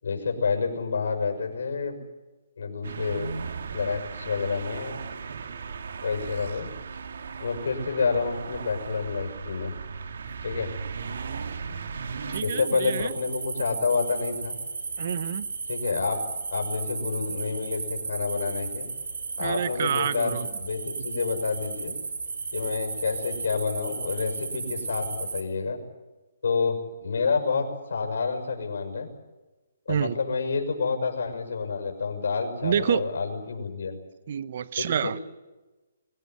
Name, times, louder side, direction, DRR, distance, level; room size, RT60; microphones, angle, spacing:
voice 1, 0.0-2.0 2.6-3.3 3.7-5.0 6.0-6.7 7.4-9.7 10.4-10.7 12.4-14.6 15.7-16.2 16.5-18.9 19.4-21.9 22.5-25.8 26.4-29.1 29.9-34.0 34.8-35.2, left 5 dB, 70° left, 4 dB, 6.2 m, -28 dB
sound 1, 2.8-12.4, right 5 dB, 65° right, 1.9 m, -37 dB
voice 2, 5.3-5.6 12.3-13.2 15.0-15.5 19.4-20.5 29.9-30.1 32.6-33.1 34.3-35.2, right 8 dB, 45° right, 16 dB, 0.9 m, -28 dB
sound 2, 12.3-25.4, right 4 dB, 85° right, 3.4 m, -34 dB
24.5 x 16.5 x 9.6 m, 1.1 s
hypercardioid pair, 165°, 0 cm